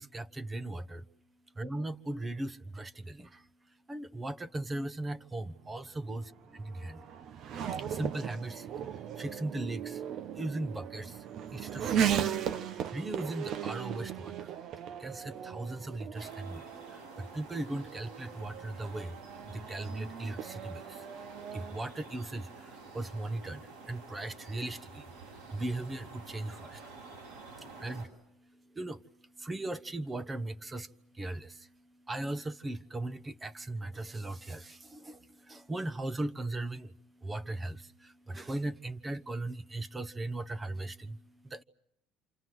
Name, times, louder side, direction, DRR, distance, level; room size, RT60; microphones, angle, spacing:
voice 1, 0.0-1.0 1.6-3.5 3.9-6.2 6.5-6.6 7.7-10.0 10.3-11.3 11.5-12.4 12.6-14.5 15.0-19.2 19.5-21.1 21.5-25.1 25.5-27.2 27.5-41.6, right 2 dB, 20° right, 1.2 m, -38 dB
Race car auto racing / Accelerating revving vroom, 5.5-21.8, right 9 dB, 60° right, 1.1 m, -37 dB
sound 1, 16.1-28.1, right 3 dB, 80° right, 8.0 m, -50 dB
28.0 x 26.5 x 8.0 m
supercardioid pair, 85°, 0 cm